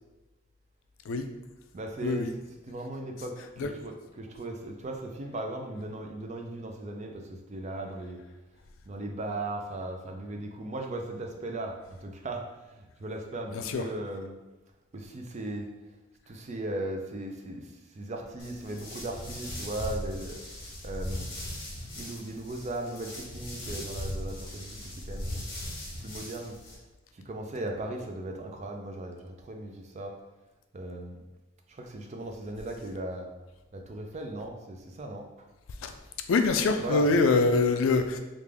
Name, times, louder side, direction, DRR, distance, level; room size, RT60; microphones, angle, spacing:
voice 1, 1.7-8.2 8.9-11.7 12.0-14.3 14.9-15.7 16.3-17.6 17.9-20.4 20.8-21.3 21.9-25.4 26.0-26.5 27.1-30.2 30.7-31.2 31.7-33.3 33.7-35.3 36.8-37.4, right 2 dB, 35° right, 3 dB, 0.4 m, -37 dB
voice 2, 13.5-13.9 35.8-35.9 36.3-38.2, left 3 dB, 85° left, 6 dB, 0.4 m, -24 dB
sound 1, 18.4-26.7, left 1 dB, 60° left, 1.1 m, -39 dB
3.3 x 2.5 x 3.4 m, 1.1 s
head